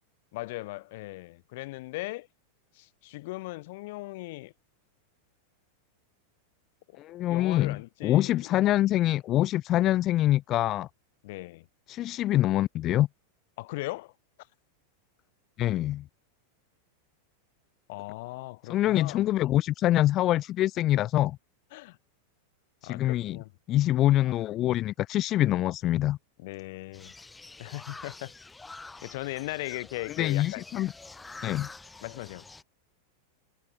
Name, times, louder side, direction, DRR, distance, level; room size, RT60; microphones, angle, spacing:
voice 1, 0.3-2.3 2.8-4.5 7.3-8.5 11.2-11.7 13.6-14.1 17.9-19.2 21.7-22.0 22.8-23.5 26.4-27.1 27.6-28.3 29.0-30.6 31.4-31.7 32.0-32.5, left 21 dB, 50° left, 3.4 m, -38 dB
voice 2, 7.0-10.9 11.9-13.1 15.6-16.1 18.7-21.4 22.8-23.4 23.7-26.2 30.2-30.9 31.4-31.7, left 14 dB, 35° left, 0.5 m, -25 dB
sound 1, 26.9-32.6, left 3 dB, 10° left, 1.5 m, -47 dB
figure-of-eight pair, 90°, 0 cm